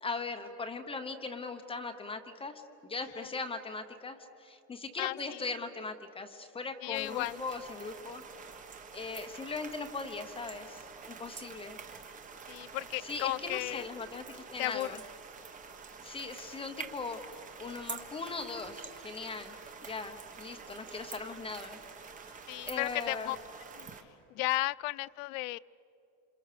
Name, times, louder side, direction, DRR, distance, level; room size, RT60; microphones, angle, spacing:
voice 1, 0.0-2.6 2.9-8.2 8.9-11.8 13.0-15.0 16.0-19.5 19.8-21.8 22.6-23.3, left 4 dB, 15° left, 6 dB, 0.9 m, -39 dB
voice 2, 5.0-5.4 6.8-7.4 12.5-13.8 14.6-14.9 22.5-23.4 23.8-23.9 24.3-25.6, left 20 dB, 85° left, 14 dB, 0.6 m, -34 dB
sound 1, 6.9-24.0, right 5 dB, 20° right, 1.4 m, -47 dB
28.0 x 27.5 x 6.8 m, 2.8 s
cardioid pair, 175°, 39 cm